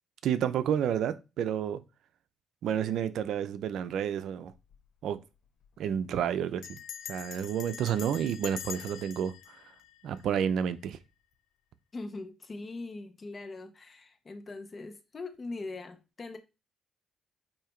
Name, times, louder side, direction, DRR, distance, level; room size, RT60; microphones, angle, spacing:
voice 1, 0.2-1.8 2.6-4.5 5.0-5.2 5.8-6.8 7.1-9.3 10.0-11.0, right 9 dB, 75° right, 0.7 m, -30 dB
Bell, 4.5-4.9 5.1-5.2 5.5-5.8 6.6-10.7, left 10 dB, 75° left, 0.4 m, -45 dB
voice 2, 11.9-16.4, left 3 dB, 35° left, 1.1 m, -41 dB
8.7 x 2.9 x 4.5 m
cardioid pair, 90°, 0 cm